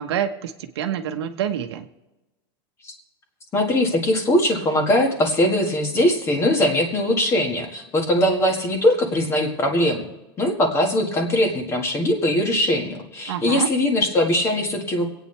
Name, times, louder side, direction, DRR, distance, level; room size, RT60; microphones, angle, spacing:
voice 1, 0.0-1.9 13.3-13.7, right 9 dB, 85° right, 8 dB, 1.1 m, -27 dB
voice 2, 3.5-10.1 10.4-15.1, left 1 dB, 20° left, 3 dB, 1.9 m, -21 dB
26.0 x 9.0 x 3.4 m, 1.0 s
supercardioid pair, 160°, 13 cm